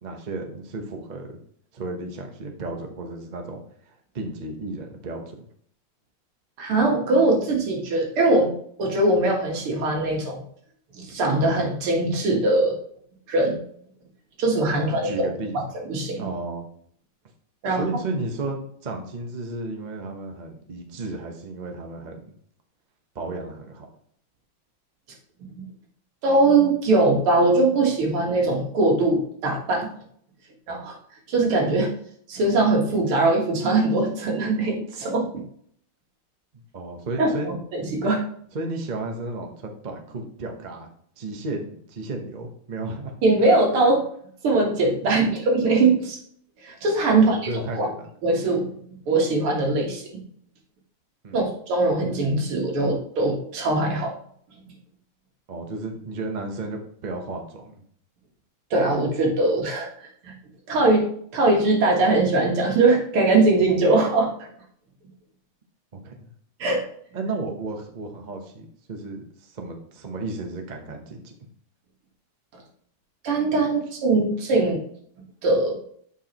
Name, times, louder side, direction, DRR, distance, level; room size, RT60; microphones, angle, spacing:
voice 1, 0.0-1.4 1.7-5.4 14.9-15.6 16.2-16.7 17.6-22.2 23.1-23.9 36.5-37.5 38.5-40.9 41.2-43.1 47.1-48.1 51.2-51.5 55.5-57.8 65.9-66.3 67.1-71.3, right 2 dB, 40° right, 3 dB, 0.6 m, -33 dB
voice 2, 6.6-8.5 8.8-10.4 11.0-12.8 13.3-13.6 14.4-16.3 17.6-17.9 26.2-29.9 30.7-31.0 31.3-31.9 32.3-35.3 37.2-37.3 37.7-38.2 43.2-44.0 44.4-46.2 46.6-47.5 47.7-47.9 48.2-50.0 51.3-54.1 58.7-59.9 60.2-60.3 60.7-61.0 61.3-64.3 66.6-66.9 73.2-74.8 75.4-75.8, right 2 dB, 85° right, 0 dB, 2.4 m, -21 dB
8.3 x 4.8 x 2.9 m, 0.62 s
omnidirectional pair, 2.3 m